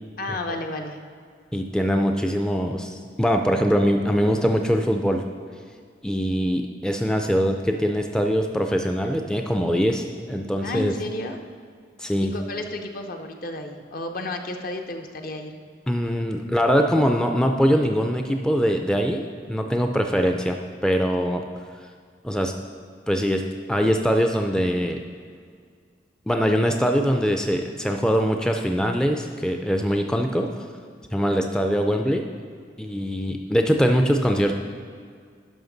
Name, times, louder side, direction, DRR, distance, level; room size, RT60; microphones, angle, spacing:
voice 1, 0.2-1.0 10.6-11.4 12.3-15.6, left 2 dB, 55° left, 5 dB, 0.7 m, -32 dB
voice 2, 1.5-5.2 6.0-10.9 12.0-12.3 15.9-21.4 22.2-22.5 23.1-23.4 23.7-25.0 26.3-30.7 31.1-32.3 32.8-34.6, equal, 5° left, 4 dB, 0.3 m, -22 dB
11.0 x 5.8 x 3.9 m, 2.1 s
head